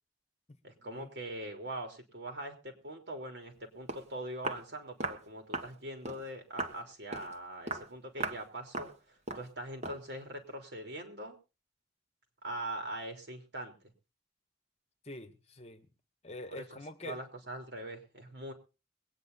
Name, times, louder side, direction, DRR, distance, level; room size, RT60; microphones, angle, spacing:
voice 1, 0.6-11.4 12.4-13.9 16.5-16.6 17.0-18.5, right 1 dB, 70° right, 3.5 m, -42 dB
Walk footsteps, 3.6-3.7 3.9-4.1 4.4-4.7 5.0-5.2 5.5-5.7 6.0-6.2 6.6-6.8 7.1-7.3 7.7-7.9 8.2-8.4 8.7-9.0 9.3-9.5 9.8-10.0, right 3 dB, 40° right, 1.5 m, -37 dB
voice 2, 15.0-15.9 16.2-17.2, left 2 dB, 35° left, 1.2 m, -45 dB
22.5 x 9.4 x 4.1 m
head